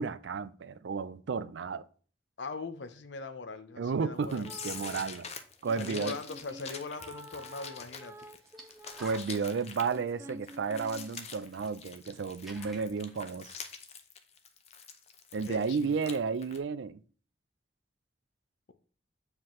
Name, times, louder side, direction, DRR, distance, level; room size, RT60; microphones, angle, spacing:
voice 1, 0.0-1.8 3.8-5.3 5.6-6.2 9.0-13.6 15.3-17.0, right 5 dB, 75° right, 0.4 m, -32 dB
voice 2, 2.4-4.5 5.8-8.3 15.5-16.2, left 4 dB, 75° left, 0.7 m, -41 dB
sound 1, 4.2-16.2 16.4-16.6, left 6 dB, 35° left, 0.6 m, -45 dB
sound 2, 4.3-5.1 5.6-9.3 9.9-11.1, right 1 dB, 15° right, 0.5 m, -49 dB
sound 3, 7.2-7.3 8.4-9.7 10.5-10.6 10.8-12.0 12.3-13.2, equal, ahead, 1.1 m, -51 dB
7.3 x 4.7 x 3.1 m
head